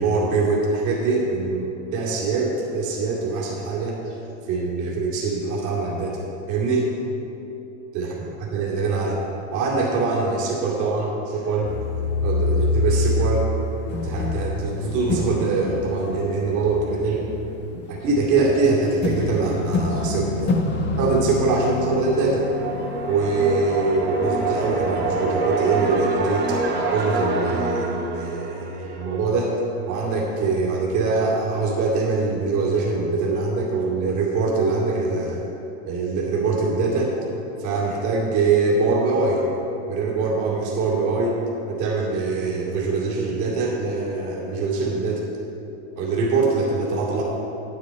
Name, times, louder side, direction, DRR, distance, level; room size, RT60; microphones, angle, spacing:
voice 1, 0.0-4.2 4.5-6.9 7.9-8.1 8.5-9.2 9.5-11.7 12.2-13.5 14.0-17.3 17.7-20.7 21.0-22.4 23.1-26.5 26.9-29.6 29.9-35.4 35.8-37.1 37.6-39.4 39.9-41.4 41.7-45.2 46.0-47.2, right 3 dB, 50° right, -3 dB, 2.6 m, -23 dB
sound 1, 11.6-25.3, left 2 dB, 30° left, 1.2 m, -27 dB
sound 2, 21.8-29.4, right 3 dB, 30° right, 1.4 m, -27 dB
9.6 x 9.4 x 4.3 m, 3.0 s
hypercardioid pair, 105°, 37 cm